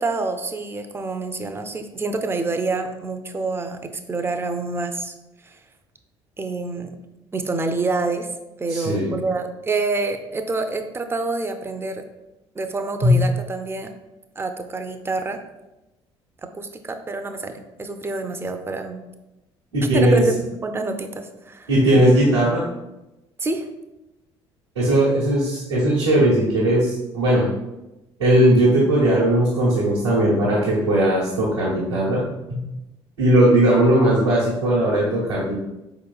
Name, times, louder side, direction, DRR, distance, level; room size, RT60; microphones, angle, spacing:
voice 1, 0.0-5.1 5.4-5.6 6.4-7.0 7.3-8.3 8.6-12.0 12.6-13.9 14.4-15.4 16.4-19.0 19.9-21.7 23.4-23.7, right 3 dB, 15° right, 7 dB, 0.4 m, -27 dB
voice 2, 8.7-9.1 13.0-13.2 19.7-20.2 21.7-22.6 24.7-27.5 28.2-32.2 32.5-32.6 33.2-35.5, right 1 dB, 85° right, -11 dB, 0.9 m, -18 dB
4.6 x 3.0 x 2.3 m, 0.97 s
figure-of-eight pair, 55°, 14 cm